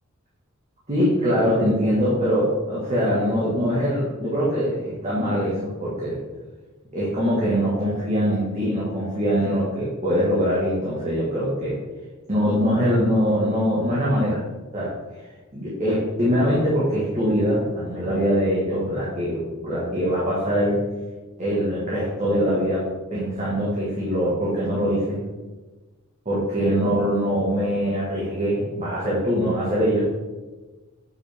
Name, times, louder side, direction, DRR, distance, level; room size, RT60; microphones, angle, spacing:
voice 1, 0.9-6.2 6.9-11.8 12.3-14.4 14.7-14.9 15.5-20.8 21.4-25.2 26.2-30.1, equal, 35° right, -7 dB, 1.6 m, -23 dB
6.9 x 6.0 x 3.5 m, 1.2 s
head